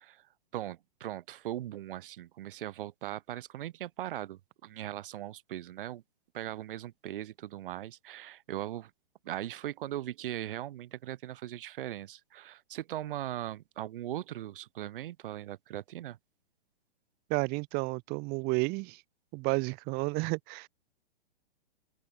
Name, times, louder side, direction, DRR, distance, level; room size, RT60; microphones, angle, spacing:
voice 1, 0.5-6.0 6.3-8.9 9.2-16.2, right 13 dB, 60° right, 1.5 m, -39 dB
voice 2, 17.3-19.0 19.3-20.7, right 28 dB, 30° right, 1.2 m, -31 dB
hypercardioid pair, 130°, 30 cm